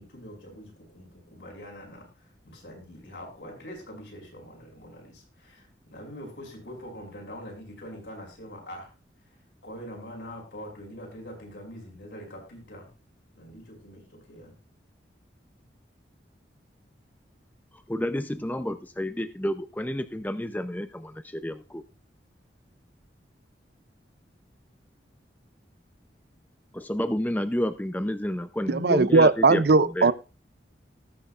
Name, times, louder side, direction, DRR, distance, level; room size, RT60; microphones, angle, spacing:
voice 1, 0.0-8.9 9.6-12.9 13.3-14.5, equal, 75° left, 5.8 m, -44 dB
voice 2, 17.9-21.8 26.7-30.1, left 1 dB, 10° left, 0.5 m, -30 dB
voice 3, 28.7-30.1, right 4 dB, 60° right, 0.5 m, -19 dB
19.0 x 6.4 x 2.4 m
head